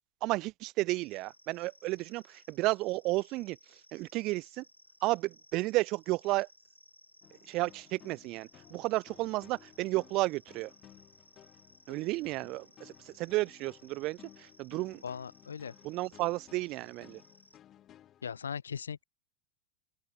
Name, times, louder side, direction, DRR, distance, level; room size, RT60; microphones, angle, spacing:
voice 1, 0.2-4.6 5.0-6.5 7.5-10.7 11.9-15.0 15.8-17.2, right 20 dB, 40° right, 0.5 m, -32 dB
sound 1, 0.9-17.6, left 1 dB, 85° left, 7.7 m, -62 dB
sound 2, 7.2-18.4, left 11 dB, 30° left, 6.0 m, -58 dB
voice 2, 15.0-15.7 18.2-19.0, left 7 dB, 70° left, 0.7 m, -39 dB
open air
figure-of-eight pair, 90°, 0 cm